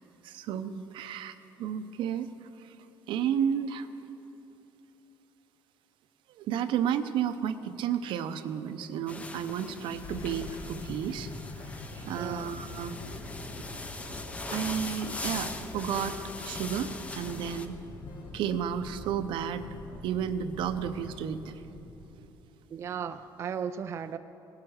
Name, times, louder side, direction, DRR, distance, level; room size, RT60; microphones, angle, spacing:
voice 1, 0.2-2.3 2.6-2.7 3.1-3.9 6.4-11.3 11.6-13.0 13.6-13.7 14.5-16.2 16.4-17.8 18.3-19.7 20.0-21.6 22.2-22.3, right 8 dB, 75° right, 10 dB, 0.7 m, -32 dB
sound 1, 9.1-17.7, left 2 dB, 15° left, 0.7 m, -41 dB
sound 2, 9.3-22.4, left 2 dB, 50° left, 1.4 m, -44 dB
sound 3, 10.9-18.3, left 1 dB, 75° left, 2.6 m, -57 dB
voice 2, 12.1-12.5 22.7-24.2, right 7 dB, 35° right, 10 dB, 0.3 m, -35 dB
18.0 x 10.5 x 6.4 m, 3.0 s
cardioid pair, 170°, 8 cm